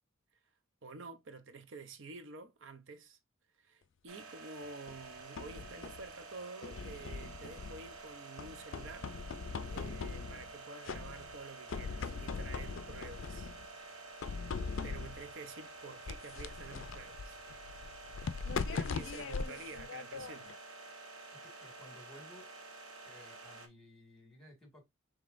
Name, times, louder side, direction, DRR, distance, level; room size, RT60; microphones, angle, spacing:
voice 1, 0.8-3.2 3.6-9.1 9.7-13.9 14.8-17.4 18.5-20.5, right 3 dB, 60° right, 0.6 m, -49 dB
sound 1, 4.1-23.7, right 3 dB, 80° right, 1.1 m, -50 dB
sound 2, 4.9-6.1 6.6-8.0 8.4-10.5 10.9-11.4 11.7-13.7 14.2-15.3 16.1-20.6, left 5 dB, 60° left, 0.4 m, -41 dB
voice 2, 21.4-22.5 23.0-24.9, left 1 dB, ahead, 1.8 m, -56 dB
5.3 x 3.6 x 2.5 m
head